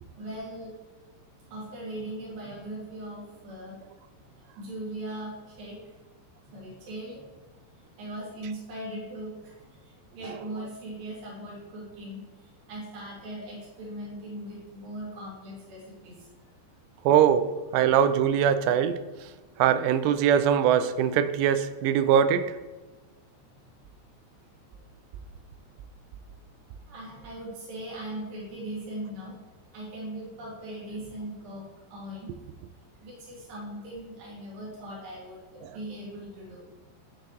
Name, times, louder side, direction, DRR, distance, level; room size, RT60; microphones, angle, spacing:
voice 1, 0.1-0.7 1.5-3.8 4.2-5.8 6.4-7.4 7.7-16.3 17.0-17.1 24.7-24.8 26.9-29.4 29.7-32.4 33.0-36.7, right 1 dB, 60° right, -6 dB, 4.2 m, -40 dB
voice 2, 17.1-17.5 17.7-19.0 19.6-22.4, right 9 dB, 85° right, 11 dB, 2.7 m, -22 dB
13.0 x 4.8 x 3.1 m, 1.2 s
omnidirectional pair, 4.9 m